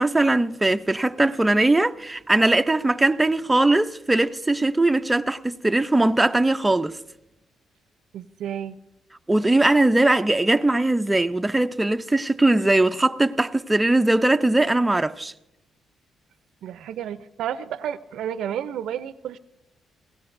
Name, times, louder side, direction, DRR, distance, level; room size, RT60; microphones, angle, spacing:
voice 1, 0.0-7.0 9.3-15.3, right 2 dB, 10° right, 0.6 m, -20 dB
voice 2, 8.1-8.8 16.6-19.4, right 9 dB, 75° right, 0.6 m, -31 dB
28.5 x 17.5 x 2.6 m
cardioid pair, 90°, 0 cm